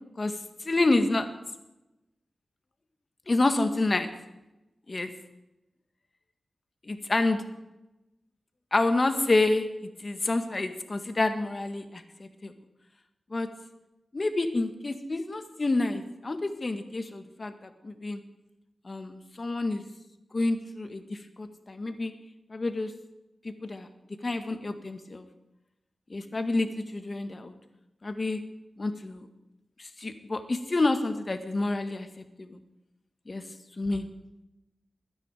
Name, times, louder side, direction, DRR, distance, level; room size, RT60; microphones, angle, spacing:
voice 1, 0.6-1.3 3.3-4.1 4.9-5.1 6.9-7.4 8.7-9.7 10.0-12.5 13.3-13.5 14.1-18.2 18.8-19.8 20.3-22.1 22.5-22.9 23.4-23.9 24.2-25.2 26.1-27.5 28.0-28.4 28.8-29.3 29.8-32.1 32.4-32.6 33.3-33.4 33.8-34.1, left 2 dB, 45° left, 8 dB, 1.7 m, -28 dB
22.0 x 9.8 x 5.0 m, 0.96 s
cardioid pair, 55°, 0 cm